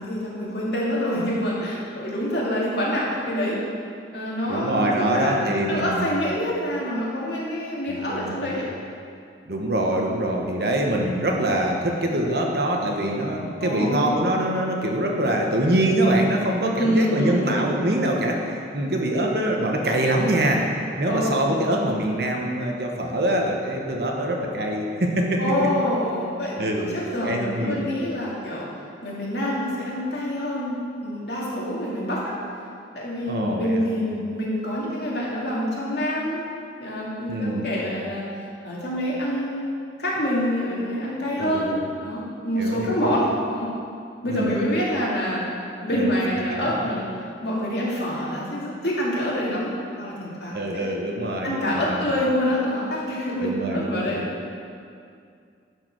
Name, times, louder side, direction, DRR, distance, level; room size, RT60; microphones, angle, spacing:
voice 1, 0.0-3.6 4.1-5.4 5.7-8.7 9.8-10.0 13.6-14.1 16.8-17.7 21.1-21.6 25.4-28.7 29.0-32.4 32.9-36.4 36.8-38.3 38.6-39.7 40.0-43.7 44.2-45.4 45.8-47.1 47.4-49.7 50.0-50.9 51.4-54.3, equal, 65° left, -6 dB, 2.3 m, -26 dB
voice 2, 4.5-6.0 7.9-8.6 9.5-18.4 18.7-20.6 21.0-25.4 26.6-26.9 27.2-27.9 33.3-33.9 37.3-37.7 41.4-41.8 42.6-43.0 44.3-44.5 45.9-46.2 50.5-52.1 53.4-54.2, right 1 dB, 55° right, 0 dB, 1.1 m, -24 dB
11.0 x 4.9 x 6.0 m, 2.4 s
head